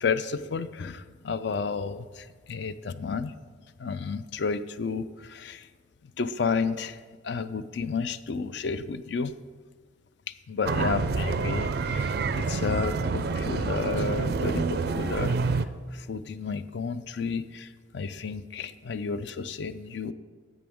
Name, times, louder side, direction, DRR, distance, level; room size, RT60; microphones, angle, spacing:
voice 1, 0.0-3.3 3.8-5.7 6.2-9.3 10.5-15.6 15.9-20.1, left 5 dB, 60° left, 13 dB, 0.4 m, -31 dB
sound 1, 10.6-15.7, right 4 dB, 50° right, 0.4 m, -27 dB
11.0 x 7.7 x 3.5 m, 1.5 s
head